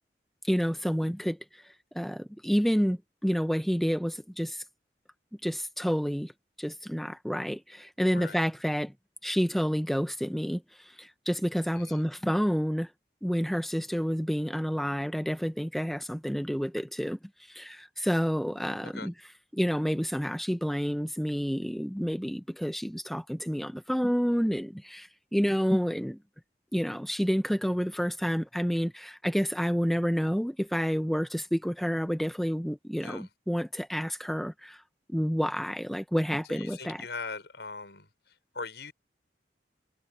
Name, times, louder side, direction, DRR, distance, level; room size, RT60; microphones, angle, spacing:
voice 1, 0.5-1.4 1.9-4.6 5.4-6.3 6.6-8.9 9.2-12.9 13.2-17.2 17.5-19.1 19.5-26.2 26.7-34.8 35.1-37.0, equal, ahead, 1.2 m, -29 dB
voice 2, 8.1-8.4 11.7-12.0 18.8-19.1 33.0-33.3 36.5-38.9, left 4 dB, 80° left, 5.1 m, -41 dB
head